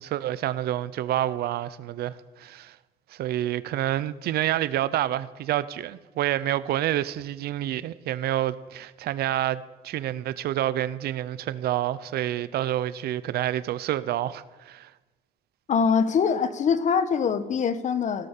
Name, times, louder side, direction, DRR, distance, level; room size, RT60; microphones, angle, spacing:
voice 1, 0.0-2.8 3.1-14.9, right 12 dB, 70° right, 0.7 m, -28 dB
voice 2, 15.7-18.3, left 6 dB, 45° left, 1.2 m, -23 dB
17.0 x 12.0 x 6.7 m
cardioid pair, 110°, 17 cm